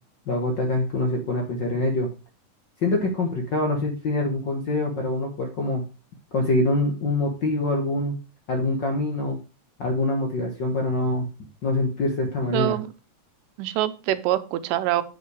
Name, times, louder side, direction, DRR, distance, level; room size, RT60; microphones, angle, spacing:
voice 1, 0.3-2.1 2.8-5.8 6.3-8.2 8.5-9.4 9.8-11.2 11.6-12.7, left 2 dB, 65° left, 2 dB, 1.0 m, -24 dB
voice 2, 12.5-12.9 13.6-15.0, right 14 dB, 85° right, 13 dB, 2.3 m, -25 dB
8.9 x 5.7 x 4.7 m, 0.32 s
omnidirectional pair, 3.8 m